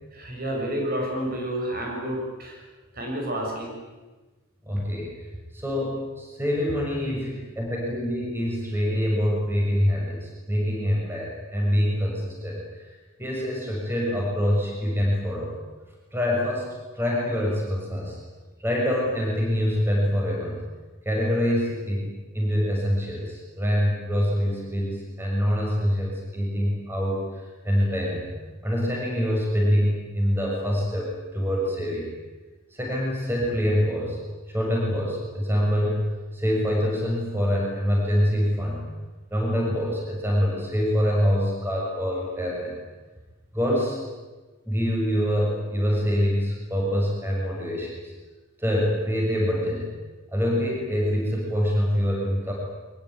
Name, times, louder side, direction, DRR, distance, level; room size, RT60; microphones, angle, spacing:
voice 1, 0.1-2.6 2.9-3.7, right 1 dB, 45° right, 0 dB, 6.7 m, -29 dB
voice 2, 4.7-5.1 5.5-12.6 13.2-15.5 16.1-16.7 16.9-18.2 18.6-20.6 21.0-22.1 22.3-28.3 28.6-32.1 32.7-34.2 34.5-38.8 39.3-42.7 43.5-44.0 44.7-48.0 48.6-49.9 50.3-52.5, equal, 10° right, -2 dB, 6.5 m, -25 dB
23.5 x 22.0 x 9.4 m, 1.2 s
head